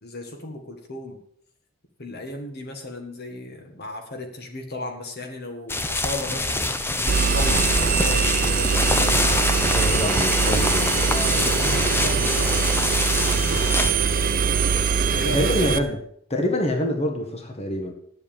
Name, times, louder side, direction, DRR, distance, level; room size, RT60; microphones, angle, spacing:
voice 1, 0.0-1.2 2.0-6.7 7.1-9.2 9.5-10.3 11.0-13.3 15.0-15.5 15.8-15.9, left 2 dB, 50° left, 4 dB, 1.6 m, -35 dB
sound 1, 5.7-13.9, left 2 dB, 10° left, 0.7 m, -25 dB
Engine, 7.1-15.8, right 5 dB, 40° right, 0.6 m, -22 dB
voice 2, 9.6-11.0 15.3-16.0 16.3-17.9, left 1 dB, 30° left, 3 dB, 1.6 m, -26 dB
9.4 x 7.8 x 7.2 m, 0.66 s
head